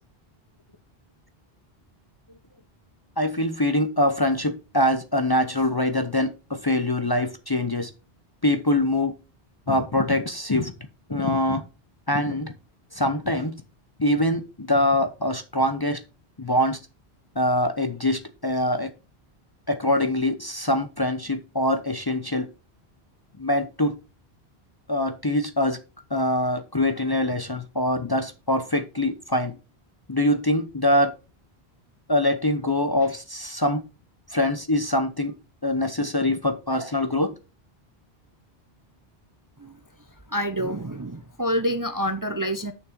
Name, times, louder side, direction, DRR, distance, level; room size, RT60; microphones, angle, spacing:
voice 1, 3.2-7.9 8.4-9.1 9.7-10.7 11.1-11.6 12.1-12.5 12.9-13.6 14.0-16.0 16.4-16.8 17.4-18.9 19.7-22.5 23.4-24.0 24.9-25.8 26.1-29.6 30.1-31.1 32.1-33.8 34.3-35.3 35.6-37.3, left 1 dB, 25° left, 0.7 m, -24 dB
voice 2, 40.3-42.7, equal, 20° right, 0.6 m, -27 dB
6.6 x 6.0 x 5.1 m
omnidirectional pair, 1.1 m